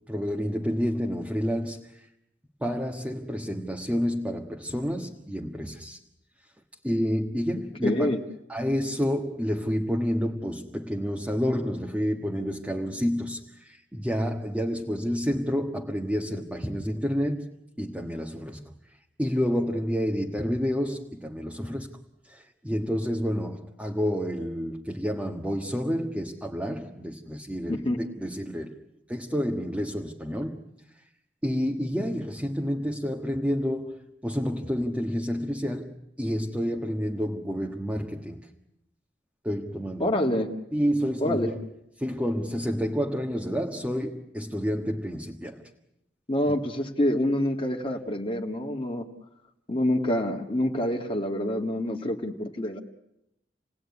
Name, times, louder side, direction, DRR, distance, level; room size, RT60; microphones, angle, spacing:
voice 1, 0.1-1.8 2.6-6.0 6.8-8.1 8.5-17.5 17.8-18.7 19.2-21.9 22.3-28.8 29.1-30.6 31.4-38.4 39.4-40.2 40.7-41.6 42.0-45.6, equal, 10° right, 1.5 m, -29 dB
voice 2, 7.8-8.2 27.7-28.0 40.0-40.5 41.2-41.5 46.3-49.1 49.7-52.8, left 1 dB, 30° left, 1.7 m, -26 dB
29.0 x 19.0 x 9.7 m
head